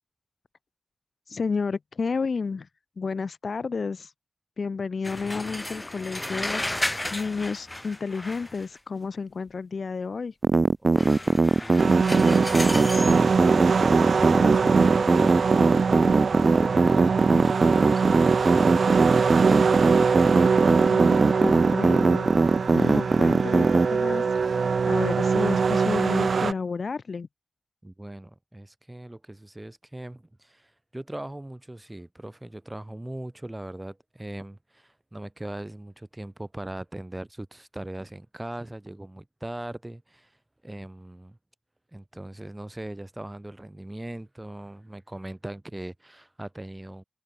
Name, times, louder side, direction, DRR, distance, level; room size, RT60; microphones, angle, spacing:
voice 1, 1.3-2.7 3.0-4.1 4.6-10.3 20.8-27.3, left 4 dB, 65° left, 0.8 m, -31 dB
sound 1, 5.0-8.8 11.0-13.2, left 1 dB, 15° left, 1.1 m, -33 dB
sound 2, 10.4-23.9, right 3 dB, 45° right, 0.8 m, -20 dB
voice 2, 10.8-18.8 27.8-40.4 40.6-41.4 41.9-47.0, right 1 dB, 15° right, 2.1 m, -40 dB
sound 3, 11.8-26.5, right 5 dB, 80° right, 0.3 m, -23 dB
wide cardioid pair, 110°, 0 cm